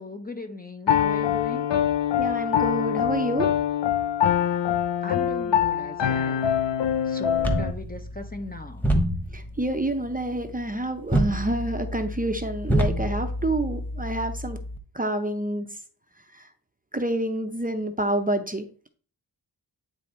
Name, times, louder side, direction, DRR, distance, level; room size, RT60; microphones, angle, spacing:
voice 1, 0.0-1.7 5.0-6.4 7.1-8.9, left 2 dB, 20° left, 0.6 m, -37 dB
Piano, 0.9-7.7, left 9 dB, 75° left, 0.6 m, -24 dB
voice 2, 2.2-3.5 9.3-14.6 14.9-15.7 16.9-18.6, right 1 dB, 20° right, 0.6 m, -28 dB
sound 1, 7.4-14.8, right 1 dB, 5° left, 1.1 m, -28 dB
9.3 x 3.4 x 4.2 m
wide cardioid pair, 105°, 44 cm